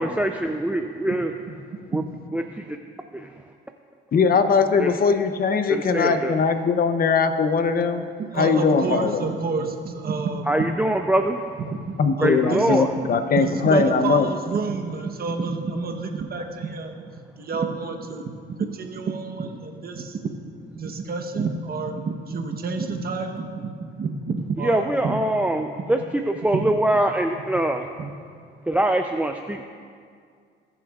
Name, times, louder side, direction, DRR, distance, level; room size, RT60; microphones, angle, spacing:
voice 1, 0.0-1.3 1.9-2.0 2.3-2.8 3.1-3.4 4.8-5.0 5.7-6.4 10.5-11.4 12.2-12.9 24.6-26.0 26.3-27.9 28.7-29.6, right 1 dB, 5° right, 4 dB, 0.4 m, -23 dB
voice 2, 4.1-8.0 8.4-9.2 12.0-14.3, left 5 dB, 50° left, 9 dB, 0.7 m, -20 dB
voice 3, 8.2-10.6 11.6-12.8 13.3-17.0 17.4-18.3 18.6-20.3 20.7-25.2 26.5-26.6 28.0-28.1, right 4 dB, 50° right, 4 dB, 1.0 m, -29 dB
20.5 x 7.0 x 2.4 m, 2.2 s
cardioid pair, 90°, 20 cm